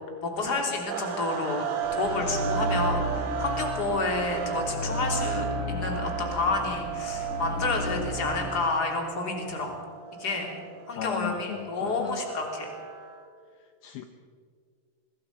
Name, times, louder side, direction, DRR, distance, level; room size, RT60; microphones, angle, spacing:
voice 1, 0.2-1.6 2.0-9.8 10.2-10.5 10.9-12.7, left 3 dB, 25° left, 2 dB, 3.1 m, -30 dB
sound 1, 0.9-13.3, right 6 dB, 80° right, 4.1 m, -35 dB
sound 2, 1.8-8.5, equal, 45° left, 2.6 m, -33 dB
voice 2, 10.9-12.2 13.8-14.1, left 12 dB, 80° left, 7 dB, 2.2 m, -36 dB
25.5 x 22.0 x 5.4 m, 2.1 s
omnidirectional pair, 5.4 m